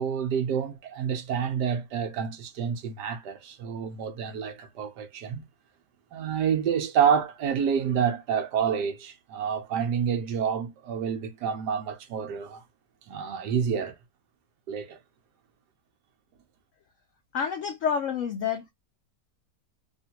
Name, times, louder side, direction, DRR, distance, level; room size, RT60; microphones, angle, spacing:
voice 1, 0.0-5.4 6.1-12.6 13.1-13.9 14.7-15.0, right 7 dB, 70° right, 1.3 m, -28 dB
voice 2, 17.3-18.7, left 7 dB, 85° left, 0.6 m, -28 dB
3.5 x 2.4 x 2.8 m
omnidirectional pair, 2.0 m